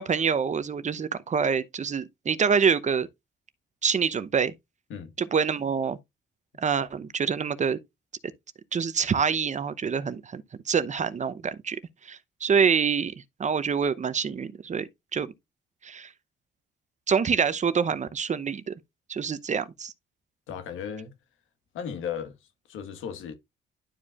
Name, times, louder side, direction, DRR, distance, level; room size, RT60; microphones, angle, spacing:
voice 1, 0.0-3.1 3.8-4.5 5.2-6.0 6.6-7.8 8.7-11.8 12.0-13.1 13.4-15.3 15.8-16.1 17.1-18.7 19.1-19.9, right 6 dB, 35° right, 0.7 m, -26 dB
voice 2, 20.5-21.1 21.7-22.4 22.7-23.3, left 8 dB, 85° left, 1.5 m, -35 dB
11.5 x 4.8 x 2.4 m
cardioid pair, 90°, 20 cm